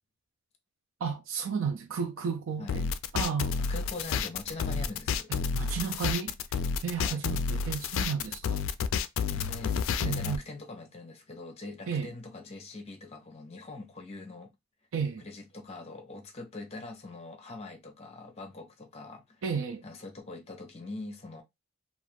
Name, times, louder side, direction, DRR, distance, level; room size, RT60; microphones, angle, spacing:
voice 1, 1.0-2.9 3.1-3.5 5.3-6.4 6.8-8.6 10.0-10.4 11.9-12.1 14.9-15.2 19.4-19.8, right 6 dB, 80° right, 0.4 m, -33 dB
sound 1, 2.7-10.4, left 6 dB, 80° left, 0.3 m, -30 dB
voice 2, 3.7-5.3 7.0-7.2 9.3-14.5 15.2-19.4 19.8-21.4, left 2 dB, 30° left, 0.6 m, -43 dB
2.4 x 2.3 x 3.3 m
head